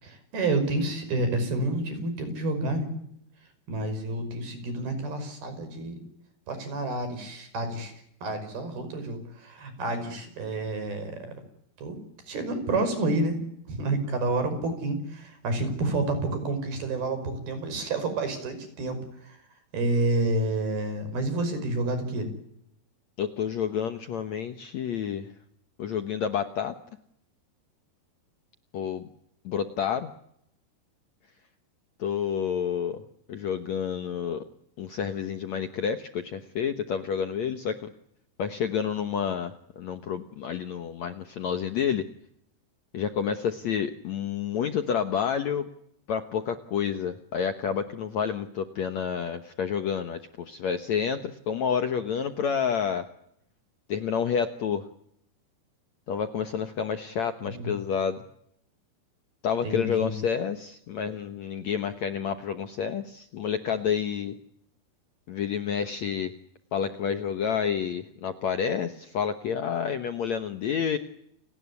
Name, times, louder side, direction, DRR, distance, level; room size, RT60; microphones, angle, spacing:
voice 1, 0.0-2.9 3.7-6.0 6.5-7.9 8.2-11.4 11.8-12.0 12.3-13.4 13.7-19.4 19.7-22.3 57.5-57.7 59.6-60.1, right 2 dB, 70° right, 9 dB, 7.4 m, -29 dB
voice 2, 23.2-25.3 25.8-26.8 28.7-29.0 29.4-30.1 32.0-33.0 33.3-34.5 34.8-37.9 38.4-42.0 42.9-45.7 46.1-53.1 53.9-54.9 56.1-58.2 59.4-64.4 65.3-66.3 66.7-71.0, left 7 dB, 65° left, 9 dB, 1.9 m, -29 dB
30.0 x 18.5 x 9.6 m, 0.74 s
omnidirectional pair, 4.6 m